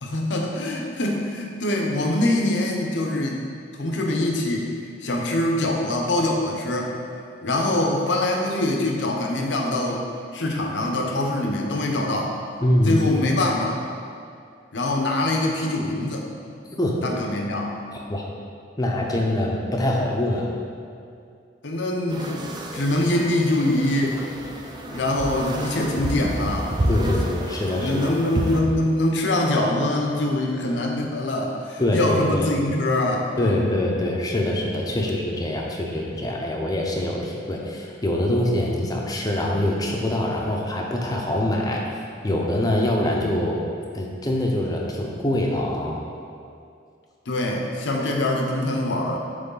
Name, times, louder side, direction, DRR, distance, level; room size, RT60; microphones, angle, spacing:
voice 1, 0.0-3.5 3.8-4.7 5.0-6.9 7.4-10.0 10.3-12.4 12.9-13.8 14.7-16.2 17.0-17.7 21.6-24.2 24.9-27.1 27.8-33.7 47.3-49.2, left 1 dB, 70° left, 0 dB, 0.7 m, -24 dB
voice 2, 12.6-13.1 16.8-17.0 18.1-18.2 18.8-20.5 26.9-27.9 31.8-32.5 33.4-41.8 42.2-43.6 43.9-46.0, left 1 dB, 20° left, -1 dB, 0.6 m, -24 dB
sound 1, 22.1-28.6, right 1 dB, 25° right, 0.4 m, -29 dB
7.7 x 3.3 x 3.9 m, 2.4 s
head